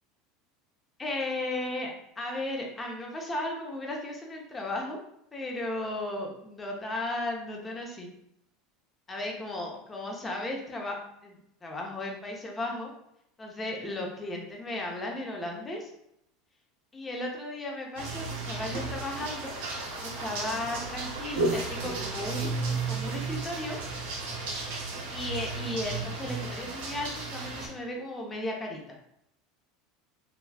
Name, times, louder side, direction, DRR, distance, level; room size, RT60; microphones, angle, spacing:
voice 1, 1.0-5.0 5.3-8.1 9.1-11.0 11.2-12.9 13.4-15.9 16.9-19.5 20.0-23.8 24.8-29.0, left 1 dB, 20° left, 0 dB, 0.7 m, -35 dB
sound 1, 18.0-27.7, right 3 dB, 80° right, 0.8 m, -33 dB
3.4 x 2.3 x 2.3 m, 0.77 s
supercardioid pair, 105°, 0 cm